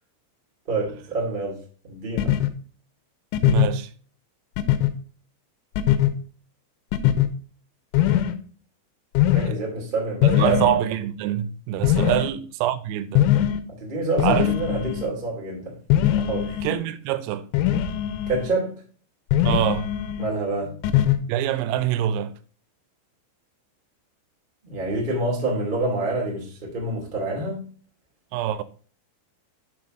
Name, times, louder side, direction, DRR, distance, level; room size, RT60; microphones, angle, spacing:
voice 1, 0.7-1.6 1.9-2.4 9.3-10.7 12.0-12.2 13.7-15.8 16.1-16.6 18.3-18.8 20.2-20.7 24.6-27.7, right 2 dB, 40° right, 0.7 m, -27 dB
sound 1, 2.2-2.5 3.3-3.7 4.6-4.9 5.8-6.1 6.9-7.3 7.9-8.4 9.2-9.5 10.2-10.8 11.8-12.3 13.2-13.6 14.2-15.1 15.9-16.8 17.5-18.5 19.3-20.3 20.8-21.2, left 12 dB, 80° left, 2.9 m, -21 dB
voice 2, 3.4-3.9 9.4-9.6 10.4-13.4 14.2-14.5 16.6-17.5 19.4-19.9 21.3-22.3 28.3-28.6, right 11 dB, 85° right, 3.3 m, -25 dB
7.1 x 6.1 x 3.7 m
omnidirectional pair, 5.9 m